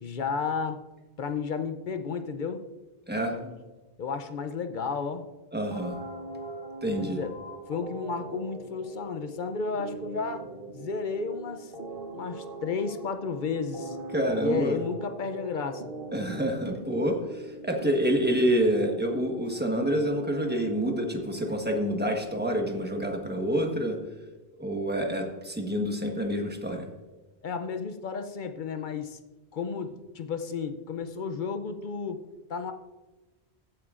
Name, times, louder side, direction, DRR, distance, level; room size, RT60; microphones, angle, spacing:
voice 1, 0.0-0.8 1.2-2.6 3.3-3.6 4.0-5.3 7.0-7.3 7.7-10.5 10.7-11.7 12.1-14.0 14.3-15.9 27.4-29.2 29.5-32.7, left 5 dB, 55° left, 8 dB, 0.7 m, -32 dB
voice 2, 5.5-6.0 6.8-7.2 14.1-14.8 16.1-24.0 24.6-26.8, equal, 10° right, 2 dB, 1.2 m, -27 dB
sound 1, 5.7-21.7, right 2 dB, 55° right, 1.2 m, -41 dB
15.0 x 9.0 x 2.5 m, 1.2 s
omnidirectional pair, 1.1 m